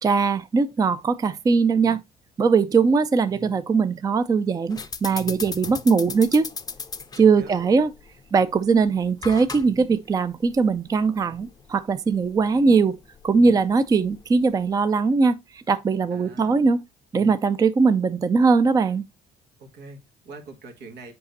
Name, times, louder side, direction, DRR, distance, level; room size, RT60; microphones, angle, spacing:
voice 1, 0.0-2.0 2.4-6.5 7.2-7.9 8.3-13.0 13.2-16.8 17.1-19.0, right 4 dB, 20° right, 0.4 m, -20 dB
sound 1, 4.7-14.7, left 5 dB, 25° left, 0.6 m, -39 dB
voice 2, 7.2-7.9 16.1-16.7 19.6-21.1, right 3 dB, 80° right, 1.8 m, -43 dB
7.7 x 4.9 x 2.6 m
cardioid pair, 110°, 17 cm